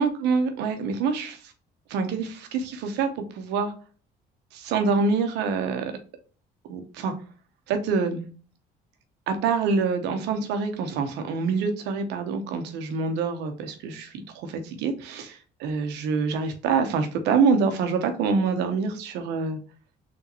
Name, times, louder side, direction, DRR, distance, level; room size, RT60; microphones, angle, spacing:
voice 1, 0.0-1.4 1.9-3.7 4.5-5.9 6.7-7.1 7.7-8.2 9.3-19.6, right 5 dB, 90° right, 7 dB, 0.9 m, -26 dB
4.0 x 3.5 x 2.9 m, 0.38 s
cardioid pair, 110°, 17 cm